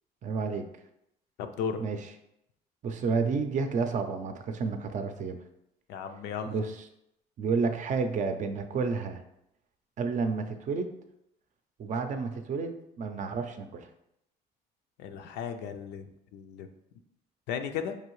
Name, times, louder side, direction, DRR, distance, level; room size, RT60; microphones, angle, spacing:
voice 1, 0.2-0.7 1.8-2.1 2.8-5.4 6.5-6.8 7.4-9.2 10.0-11.0 11.8-13.9, right 4 dB, 45° right, 7 dB, 0.5 m, -30 dB
voice 2, 1.4-1.8 5.9-6.5 15.0-16.7 17.5-18.0, left 7 dB, 80° left, 7 dB, 0.5 m, -35 dB
4.9 x 2.7 x 3.0 m, 0.80 s
cardioid pair, 110°, 17 cm